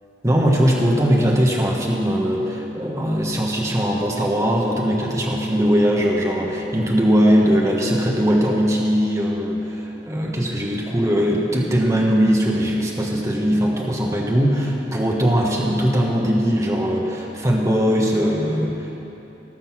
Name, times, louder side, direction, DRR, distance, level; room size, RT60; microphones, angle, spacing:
voice 1, 0.2-19.0, equal, 15° right, -2 dB, 1.3 m, -20 dB
19.0 x 6.6 x 6.1 m, 2.9 s
head